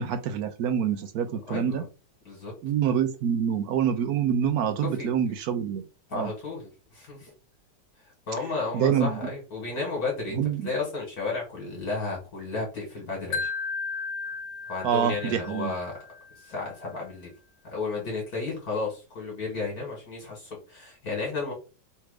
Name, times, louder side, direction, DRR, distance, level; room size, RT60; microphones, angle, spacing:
voice 1, 0.0-1.8 2.6-5.8 6.1-6.3 8.7-9.2 10.4-10.6 14.8-15.7, right 8 dB, 70° right, 0.9 m, -26 dB
voice 2, 1.5-1.8 2.3-2.5 5.0-5.1 6.1-6.6 6.9-7.3 8.3-13.5 14.7-15.9 16.5-17.3 17.7-21.5, left 3 dB, 55° left, 2.0 m, -33 dB
Wind chime, 13.3-16.4, left 4 dB, 85° left, 1.4 m, -34 dB
3.4 x 3.2 x 4.7 m
omnidirectional pair, 1.9 m